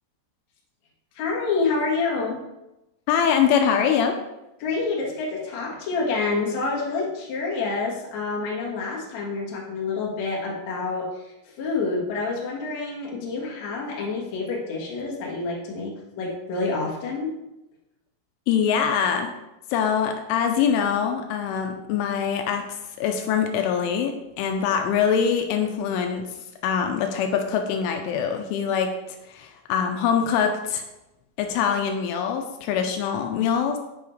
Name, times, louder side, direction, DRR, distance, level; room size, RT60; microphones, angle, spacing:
voice 1, 1.1-2.4 4.6-17.4, left 3 dB, 60° left, -3 dB, 1.9 m, -28 dB
voice 2, 3.1-4.2 18.5-19.3 19.7-22.7 23.0-26.2 26.6-28.9 29.3-30.8 31.4-33.8, left 7 dB, 85° left, 5 dB, 3.0 m, -23 dB
7.7 x 7.1 x 3.2 m, 0.94 s
omnidirectional pair, 5.7 m